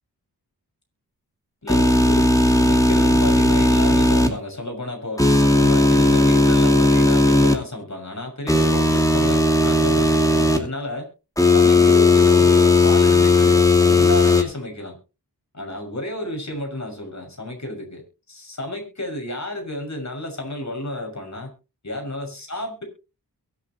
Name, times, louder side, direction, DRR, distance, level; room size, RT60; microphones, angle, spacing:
voice 1, 1.6-5.3 5.6-11.1 11.4-15.0 15.5-18.0 18.3-21.5 21.8-22.8, left 1 dB, 45° left, 2 dB, 6.5 m, -31 dB
sound 1, 1.7-4.3 5.2-7.5 8.5-10.6 11.4-14.4, left 2 dB, 10° left, 2.6 m, -16 dB
23.0 x 8.0 x 3.0 m, 0.31 s
wide cardioid pair, 70°, 39 cm